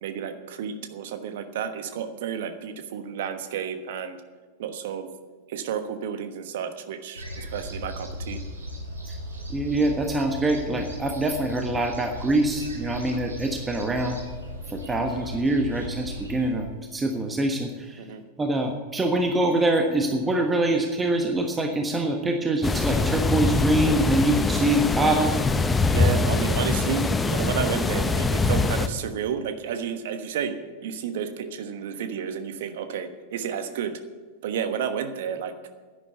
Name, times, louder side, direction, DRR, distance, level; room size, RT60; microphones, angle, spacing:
voice 1, 0.0-4.2 4.6-5.1 5.5-8.4 18.0-18.2 25.9-34.0 34.4-35.5, right 8 dB, 55° right, 9 dB, 1.2 m, -31 dB
sound 1, 7.1-16.5, equal, 75° right, 3.1 m, -37 dB
voice 2, 9.5-14.2 14.7-16.7 16.9-17.7 18.4-25.3, right 1 dB, 15° right, 3 dB, 1.3 m, -24 dB
sound 2, 22.6-28.9, left 3 dB, 15° left, 0.7 m, -23 dB
11.0 x 9.9 x 8.0 m, 1.4 s
figure-of-eight pair, 90°, 0 cm